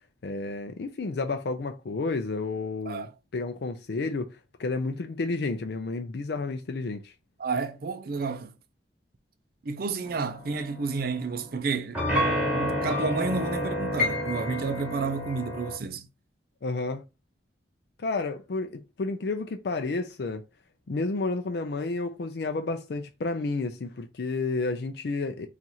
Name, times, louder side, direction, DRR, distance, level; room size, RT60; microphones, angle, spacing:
voice 1, 0.2-7.1 16.6-17.0 18.0-20.4 20.9-25.5, left 3 dB, 65° left, 0.4 m, -31 dB
voice 2, 7.4-8.5 9.6-16.1, right 4 dB, 55° right, 0.4 m, -31 dB
sound 1, 10.0-11.5 11.9-15.8, left 1 dB, 10° right, 1.1 m, -29 dB
2.9 x 2.5 x 4.0 m
head